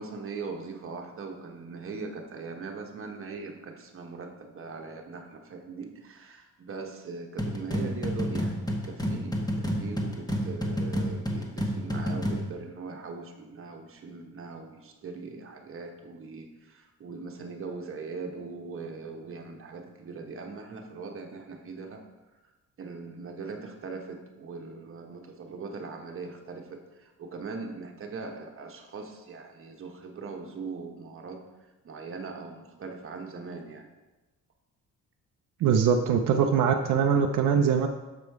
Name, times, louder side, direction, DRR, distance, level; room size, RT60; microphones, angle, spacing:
voice 1, 0.0-22.0 22.8-31.4 31.8-33.9, right 4 dB, 45° right, 3 dB, 1.1 m, -40 dB
sound 1, 7.4-12.5, equal, 10° left, 1.1 m, -30 dB
voice 2, 35.6-37.9, right 7 dB, 80° right, 4 dB, 0.6 m, -22 dB
6.8 x 5.0 x 4.6 m, 1.1 s
cardioid pair, 115°, 31 cm